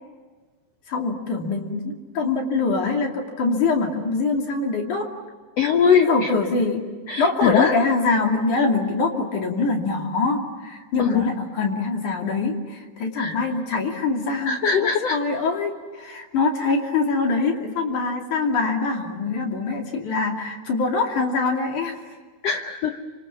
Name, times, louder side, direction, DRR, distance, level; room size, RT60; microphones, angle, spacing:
voice 1, 0.9-5.1 6.1-6.9 7.2-22.0, left 3 dB, 55° left, 2 dB, 3.9 m, -24 dB
voice 2, 5.6-6.3 7.1-7.7 11.0-11.3 13.1-13.4 14.4-15.2 22.4-23.0, left 7 dB, 80° left, 6 dB, 1.4 m, -21 dB
28.5 x 26.5 x 7.3 m, 1.4 s
omnidirectional pair, 4.6 m